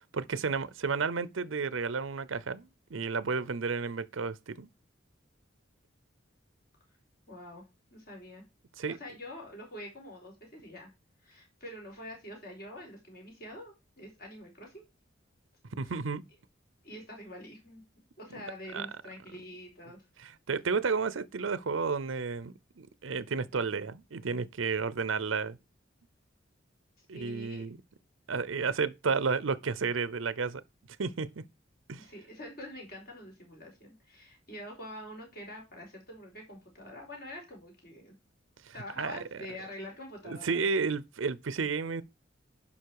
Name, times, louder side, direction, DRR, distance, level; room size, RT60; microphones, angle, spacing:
voice 1, 0.1-4.7 8.8-9.0 15.8-16.2 18.7-18.9 20.2-25.6 27.1-27.8 28.3-30.6 31.0-31.3 31.9-32.0 38.6-39.4 40.2-42.0, right 5 dB, 85° right, 0.6 m, -32 dB
voice 2, 7.3-7.6 7.9-8.4 9.0-10.9 11.2-14.8 15.8-15.9 16.8-17.8 18.2-20.0 27.1-27.7 32.0-38.1 38.7-40.6, left 1 dB, 50° left, 4.6 m, -46 dB
11.5 x 5.6 x 4.7 m
head